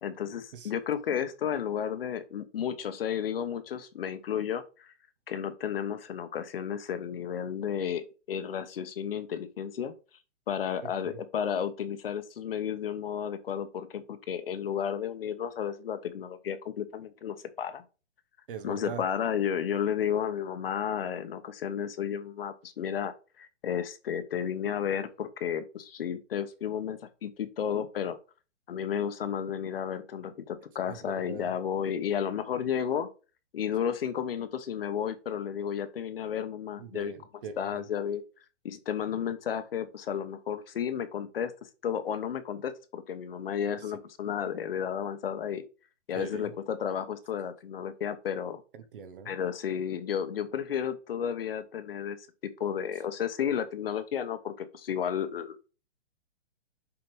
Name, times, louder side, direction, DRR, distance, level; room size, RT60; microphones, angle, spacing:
voice 1, 0.0-4.9 5.3-9.9 10.5-17.8 18.6-28.2 28.7-33.1 33.5-37.2 37.6-38.2 38.6-41.5 41.8-45.6 46.1-48.6 49.2-52.2 52.6-55.7, left 8 dB, 50° left, 1.1 m, -32 dB
voice 2, 18.5-19.0 30.9-31.5 36.8-37.8 46.1-46.5 48.7-49.4, right 7 dB, 45° right, 1.2 m, -42 dB
7.1 x 5.1 x 3.3 m
hypercardioid pair, 170°, 36 cm